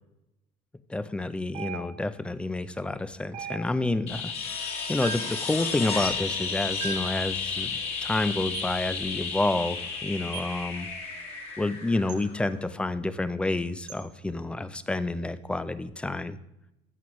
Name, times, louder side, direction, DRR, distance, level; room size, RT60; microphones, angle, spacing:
voice 1, 0.9-4.3 4.9-10.9 11.6-16.4, left 2 dB, 5° left, 14 dB, 0.4 m, -29 dB
sound 1, 1.5-2.2 3.3-4.0 5.0-5.4 6.8-7.2 8.5-8.8 10.3-10.6 12.1-12.3 13.9-14.1, right 7 dB, 60° right, 1.3 m, -39 dB
sound 2, 4.1-12.7 15.1-15.2, left 5 dB, 40° left, 2.1 m, -33 dB
14.5 x 7.7 x 3.0 m, 0.90 s
cardioid pair, 160°, 16 cm